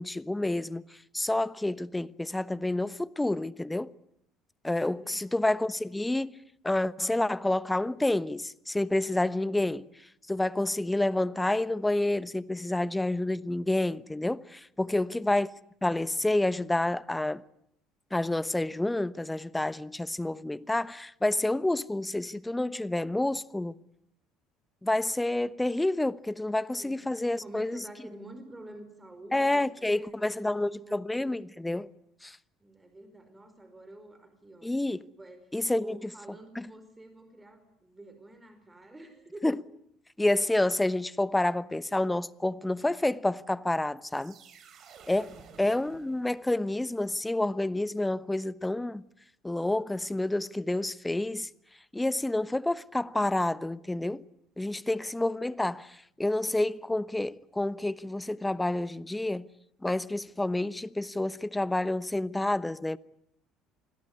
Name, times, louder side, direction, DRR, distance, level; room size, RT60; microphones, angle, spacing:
voice 1, 0.0-3.9 4.6-6.4 6.6-15.5 15.8-17.4 18.1-23.7 24.8-27.8 29.3-31.9 32.2-32.4 34.6-35.0 35.5-36.0 36.6-36.7 39.4-39.6 40.2-44.4 45.1-49.0 49.4-51.5 51.9-54.3 54.6-59.5 59.8-63.0, left 1 dB, 10° left, 1.0 m, -29 dB
voice 2, 4.8-5.4 14.8-15.1 26.8-31.4 32.6-34.8 35.2-39.6 45.0-45.5 54.8-55.1, right 1 dB, 15° right, 5.0 m, -49 dB
sound 1, 44.0-46.8, right 6 dB, 50° right, 4.9 m, -54 dB
28.0 x 21.0 x 9.7 m
hypercardioid pair, 60°, 0 cm